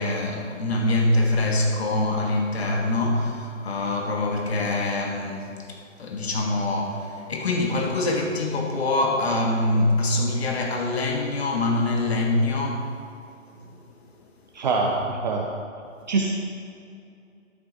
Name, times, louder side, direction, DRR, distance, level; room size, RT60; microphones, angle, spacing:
voice 1, 0.0-12.9 13.6-13.7, left 2 dB, 55° left, 1 dB, 1.4 m, -24 dB
voice 2, 14.5-15.5 16.1-16.3, right 4 dB, 35° right, -1 dB, 0.8 m, -24 dB
12.5 x 7.2 x 4.0 m, 2.4 s
figure-of-eight pair, 135°, 39 cm